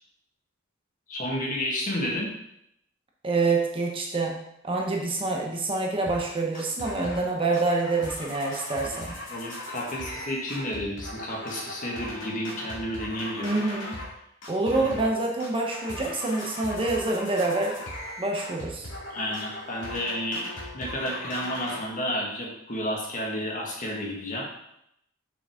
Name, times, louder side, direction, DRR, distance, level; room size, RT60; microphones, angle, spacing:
voice 1, 1.1-2.3 9.3-13.6 14.8-15.1 19.1-20.5 20.7-24.5, left 1 dB, 40° left, -2 dB, 1.7 m, -31 dB
voice 2, 3.2-9.1 13.4-14.0 14.5-17.8 18.2-18.9, right 3 dB, 25° right, 0 dB, 0.9 m, -27 dB
sound 1, 6.1-6.3 6.5-7.3 7.5-14.1 14.4-15.1 15.4-21.8, left 1 dB, 65° left, 2.3 m, -38 dB
6.2 x 6.0 x 3.7 m, 0.77 s
head